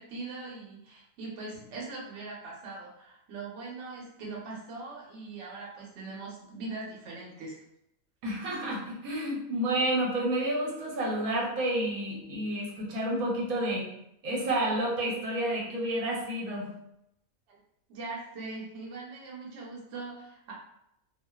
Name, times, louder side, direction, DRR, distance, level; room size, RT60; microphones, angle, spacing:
voice 1, 0.0-7.6 17.5-17.6 17.9-20.5, right 3 dB, 60° right, -3 dB, 0.9 m, -41 dB
voice 2, 8.2-13.9 14.2-16.7, right 1 dB, 85° right, -3 dB, 1.1 m, -30 dB
2.4 x 2.3 x 2.2 m, 0.79 s
omnidirectional pair, 1.5 m